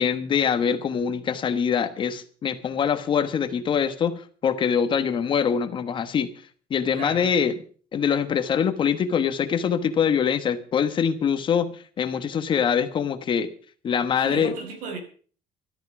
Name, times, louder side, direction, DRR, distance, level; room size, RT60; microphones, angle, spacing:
voice 1, 0.0-6.3 6.7-7.6 7.9-13.5 13.8-14.5, left 7 dB, 35° left, 1.2 m, -24 dB
voice 2, 6.9-7.3 14.2-15.0, right 4 dB, 65° right, 5.3 m, -35 dB
13.5 x 13.5 x 6.0 m
cardioid pair, 165°, 15 cm